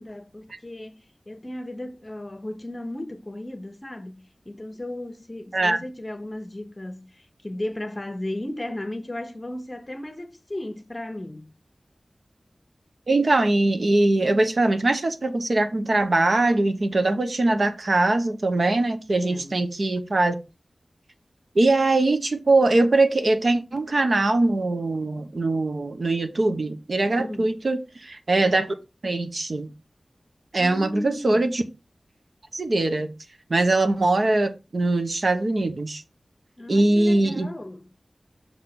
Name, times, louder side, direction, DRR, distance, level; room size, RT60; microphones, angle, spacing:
voice 1, 0.0-11.5 19.1-19.6 27.2-27.5 30.6-31.4 36.6-37.9, left 1 dB, 30° left, 1.0 m, -35 dB
voice 2, 13.1-20.3 21.5-28.7 29.0-29.7 30.5-31.6 32.5-33.1 33.5-36.0 36.7-37.5, right 2 dB, 60° right, 1.0 m, -22 dB
6.6 x 3.7 x 5.9 m
wide cardioid pair, 85°, 0 cm